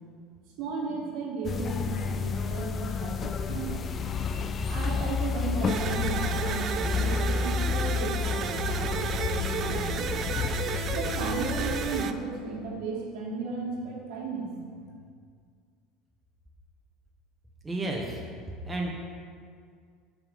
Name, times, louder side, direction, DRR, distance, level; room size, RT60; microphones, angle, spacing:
voice 1, 0.6-3.9 4.2-10.1 10.9-14.5, right 4 dB, 60° right, -2 dB, 1.3 m, -35 dB
sound 1, 1.4-12.0, left 6 dB, 35° left, 0.3 m, -30 dB
sound 2, 5.7-12.1, right 8 dB, 45° right, 0.3 m, -33 dB
voice 2, 17.6-18.2 18.6-18.9, right 2 dB, 15° right, -1 dB, 0.9 m, -31 dB
6.8 x 3.6 x 5.3 m, 2.1 s
hypercardioid pair, 70°, 0 cm